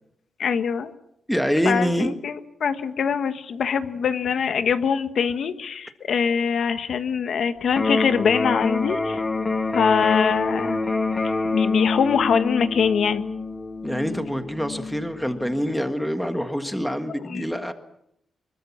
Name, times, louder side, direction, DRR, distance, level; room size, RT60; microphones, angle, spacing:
voice 1, 0.4-0.9 1.6-2.3 2.6-9.2 9.7-10.8 11.5-13.2 17.3-17.5, left 6 dB, 55° left, 10 dB, 1.4 m, -23 dB
voice 2, 1.3-2.1 13.8-17.7, equal, ahead, 7 dB, 1.6 m, -25 dB
Electric guitar, 7.7-15.7, left 3 dB, 20° left, 2.1 m, -26 dB
25.0 x 22.5 x 7.3 m, 0.76 s
wide cardioid pair, 170°, 0 cm